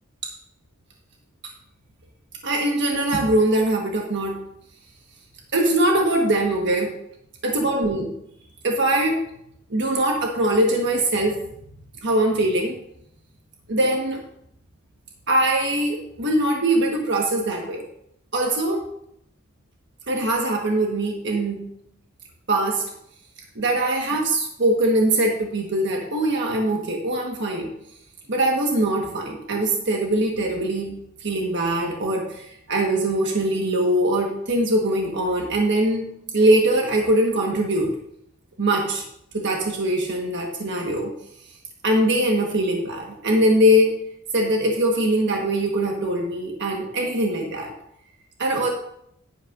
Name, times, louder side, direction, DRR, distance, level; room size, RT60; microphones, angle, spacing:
voice 1, 2.4-4.4 5.5-6.9 7.4-8.1 8.6-9.2 9.7-11.5 12.0-12.7 13.7-14.2 15.3-17.8 18.3-18.8 20.1-21.6 22.5-22.8 23.5-27.7 28.3-30.9 31.2-36.0 36.3-37.9 38.6-39.0 39.3-41.1 41.8-43.9 44.3-47.7 48.4-48.7, right 1 dB, 55° right, 0 dB, 1.4 m, -22 dB
10.5 x 10.5 x 2.5 m, 0.74 s
head